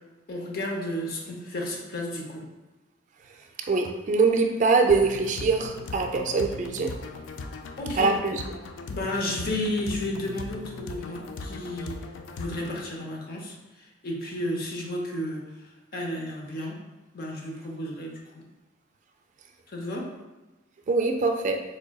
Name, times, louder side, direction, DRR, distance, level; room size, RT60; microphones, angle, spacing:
voice 1, 0.3-2.5 7.8-8.1 8.9-11.9 12.3-13.6 14.0-15.4 15.9-16.8 17.1-18.4 19.7-20.1, left 1 dB, 55° left, 0 dB, 0.7 m, -32 dB
voice 2, 3.7-7.0 8.0-8.4 20.9-21.6, right 4 dB, 40° right, 4 dB, 0.3 m, -23 dB
sound 1, 4.9-12.9, left 3 dB, 80° left, 0.3 m, -39 dB
3.8 x 3.3 x 2.3 m, 1.1 s
head